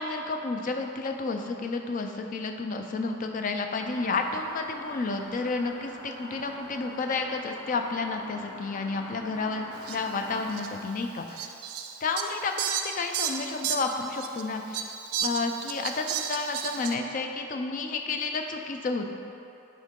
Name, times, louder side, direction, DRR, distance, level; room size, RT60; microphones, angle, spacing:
voice 1, 0.0-11.5 12.0-14.9 15.2-19.1, left 3 dB, 35° left, 4 dB, 0.3 m, -31 dB
sound 1, 3.8-10.6, left 1 dB, 65° left, 0.9 m, -44 dB
Fowl, 9.8-10.0 10.5-10.7 11.4-14.4 14.7-16.9, right 8 dB, 75° right, 0.4 m, -32 dB
6.3 x 4.5 x 3.7 m, 2.8 s
head